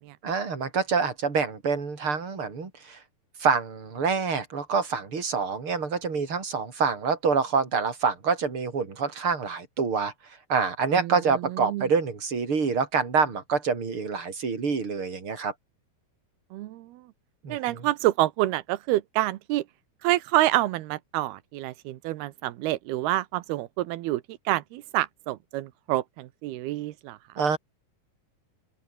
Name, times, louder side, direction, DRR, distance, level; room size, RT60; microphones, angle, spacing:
voice 1, 0.2-3.0 3.4-10.1 10.5-15.5 17.4-17.9 27.4-27.6, right 5 dB, 35° right, 4.8 m, -26 dB
voice 2, 11.5-11.9 16.5-17.0 17.5-19.6 20.0-27.2, right 16 dB, 90° right, 2.9 m, -27 dB
open air
omnidirectional pair, 4.5 m